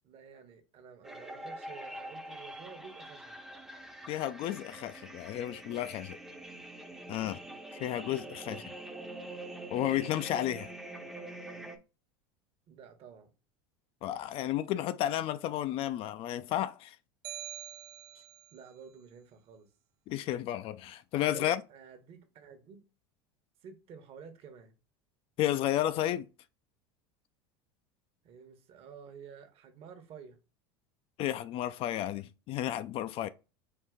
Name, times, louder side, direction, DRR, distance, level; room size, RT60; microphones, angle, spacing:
voice 1, 0.0-3.4 8.3-8.7 12.7-13.3 18.5-19.7 21.3-22.8 23.6-24.8 28.2-30.4, right 6 dB, 50° right, 1.1 m, -51 dB
sound 1, 1.0-11.8, right 1 dB, 5° right, 0.6 m, -45 dB
voice 2, 4.1-6.2 7.1-7.4 7.7-8.6 9.7-10.7 14.0-17.0 20.1-21.6 25.4-26.3 31.2-33.3, left 12 dB, 50° left, 0.4 m, -32 dB
sound 2, 17.2-18.6, right 12 dB, 70° right, 0.5 m, -44 dB
4.5 x 2.5 x 3.7 m
supercardioid pair, 105°, 13 cm